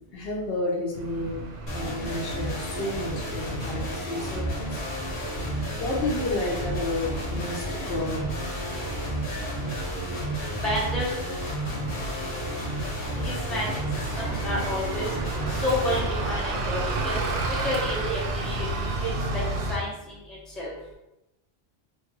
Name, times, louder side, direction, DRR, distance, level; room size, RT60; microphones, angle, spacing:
voice 1, 0.1-1.4 1.7-5.2 5.8-8.3 10.0-10.1, left 2 dB, 65° left, -1 dB, 0.8 m, -31 dB
Bus, 0.9-19.8, right 2 dB, 70° right, 0.8 m, -33 dB
sound 1, 1.7-16.0, equal, 90° left, 1.1 m, -32 dB
voice 2, 10.6-11.2 13.2-13.7 14.2-15.1 15.5-17.2 17.5-19.4 19.7-20.7, left 1 dB, ahead, -6 dB, 0.6 m, -30 dB
3.0 x 2.3 x 2.9 m, 0.91 s
omnidirectional pair, 1.1 m